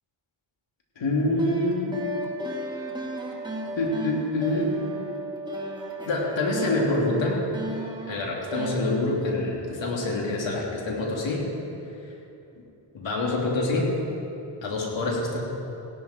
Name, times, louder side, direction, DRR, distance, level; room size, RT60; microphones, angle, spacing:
voice 1, 1.0-2.0 3.8-4.8 6.0-7.4 8.1-11.5 12.9-13.9 14.6-15.4, left 2 dB, 60° left, -2 dB, 3.1 m, -26 dB
sound 1, 1.2-8.7, right 1 dB, 10° right, 2.4 m, -35 dB
16.0 x 11.5 x 4.5 m, 2.9 s
cardioid pair, 60°, 50 cm